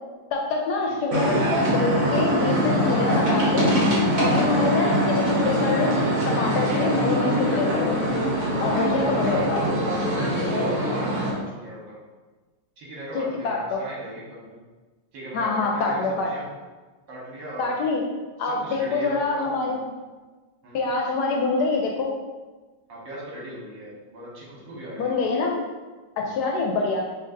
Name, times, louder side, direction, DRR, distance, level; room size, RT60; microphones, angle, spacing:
voice 1, 0.3-3.7 4.2-5.9 6.3-8.0 8.6-9.6 13.1-13.8 15.3-16.3 17.6-18.0 18.4-19.8 20.7-22.1 25.0-25.5 26.2-27.0, left 3 dB, 75° left, 0 dB, 1.0 m, -25 dB
sound 1, 1.1-11.3, equal, 45° right, 0.7 m, -23 dB
voice 2, 8.5-9.5 10.1-12.0 12.8-14.6 15.1-16.5 17.1-17.7 18.4-19.8 20.6-20.8 22.9-25.2 26.2-26.4, equal, 80° right, -6 dB, 1.9 m, -38 dB
5.6 x 2.7 x 2.5 m, 1.3 s
omnidirectional pair, 2.0 m